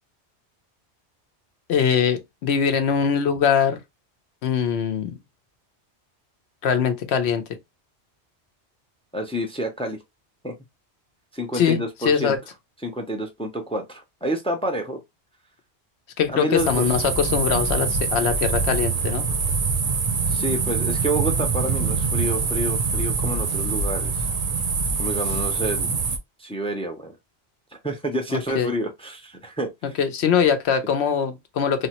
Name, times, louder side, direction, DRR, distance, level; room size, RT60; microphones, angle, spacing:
voice 1, 1.7-3.8 4.4-5.1 6.6-7.4 11.5-12.4 16.2-19.3 28.3-28.7 30.0-31.9, left 7 dB, 75° left, 0.9 m, -22 dB
voice 2, 9.1-10.0 10.4-10.5 11.3-12.3 12.8-15.0 16.3-16.9 20.3-24.2 25.0-25.9 26.4-27.2 27.8-29.7, right 1 dB, 10° left, 0.4 m, -28 dB
sound 1, 16.6-26.2, right 5 dB, 55° right, 0.7 m, -24 dB
3.3 x 2.1 x 2.8 m
omnidirectional pair, 1.1 m